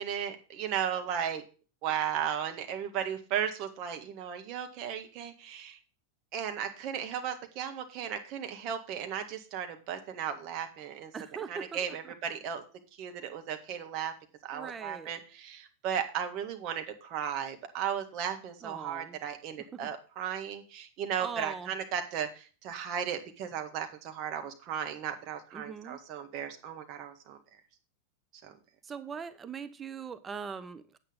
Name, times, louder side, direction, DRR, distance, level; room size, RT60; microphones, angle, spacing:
voice 1, 0.0-1.4 1.8-5.8 6.3-11.1 11.5-12.6 13.0-14.1 14.4-27.4 28.4-28.5, right 8 dB, 40° right, 5 dB, 1.8 m, -35 dB
voice 2, 11.1-11.7 12.0-12.1 14.5-15.1 18.6-19.2 19.7-19.8 21.2-21.7 25.5-26.0 28.8-31.0, right 6 dB, 20° right, 12 dB, 0.6 m, -41 dB
9.0 x 8.6 x 3.8 m, 0.35 s
figure-of-eight pair, 90°, 0 cm